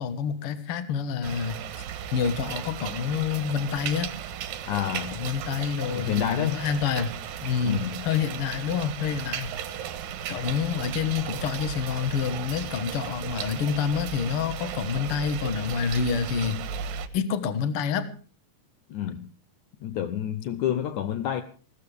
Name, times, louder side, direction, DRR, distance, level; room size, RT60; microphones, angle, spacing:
voice 1, 0.0-1.6 2.1-4.1 5.1-7.1 7.4-9.5 10.3-16.6 17.1-18.1, left 7 dB, 70° left, 10 dB, 1.3 m, -28 dB
sound 1, 1.2-17.1, right 8 dB, 70° right, 2.6 m, -35 dB
voice 2, 4.7-5.1 5.9-6.7 7.6-8.1 18.9-19.3 19.8-21.4, left 10 dB, 90° left, 10 dB, 1.7 m, -29 dB
20.5 x 17.0 x 3.5 m, 0.39 s
omnidirectional pair, 4.7 m